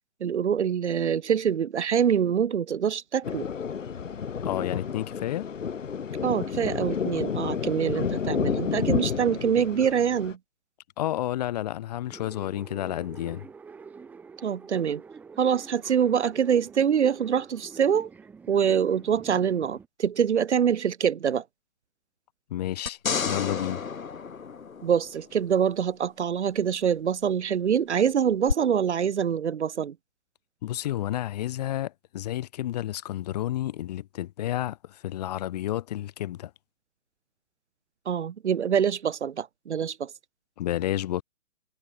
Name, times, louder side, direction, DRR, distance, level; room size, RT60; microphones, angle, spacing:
voice 1, 0.2-3.5 6.2-10.4 14.4-15.0 15.4-18.1 18.5-21.4 24.8-29.9 38.0-40.1, right 8 dB, 55° right, 1.6 m, -25 dB
Thunder, 3.2-10.3, left 7 dB, 65° left, 5.7 m, -30 dB
voice 2, 4.4-5.5 11.0-13.5 22.5-23.0 23.2-23.8 30.6-36.5 40.6-41.2, left 13 dB, 30° left, 3.5 m, -30 dB
sound 1, 12.1-19.9, right 5 dB, 5° right, 1.6 m, -46 dB
sound 2, 22.9-25.4 28.5-28.6, left 6 dB, 85° left, 4.1 m, -31 dB
hypercardioid pair, 170°, 40 cm